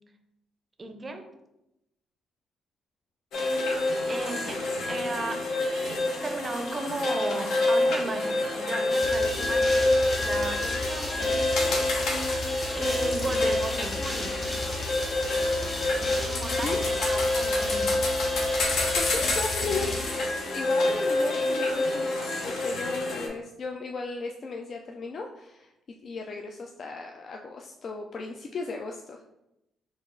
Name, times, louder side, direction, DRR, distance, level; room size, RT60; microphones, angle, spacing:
voice 1, 0.8-1.3 4.1-9.9 10.2-11.9 12.7-14.5 16.3-18.0, right 2 dB, 30° right, 7 dB, 0.5 m, -36 dB
sound 1, 3.3-23.3, left 2 dB, 75° left, 0.7 m, -27 dB
sound 2, 8.9-20.8, left 1 dB, 20° left, 1.0 m, -34 dB
voice 2, 18.9-25.7 26.0-29.2, left 4 dB, 50° left, 2 dB, 0.3 m, -36 dB
3.9 x 2.4 x 3.7 m, 0.90 s
cardioid pair, 90°, 0 cm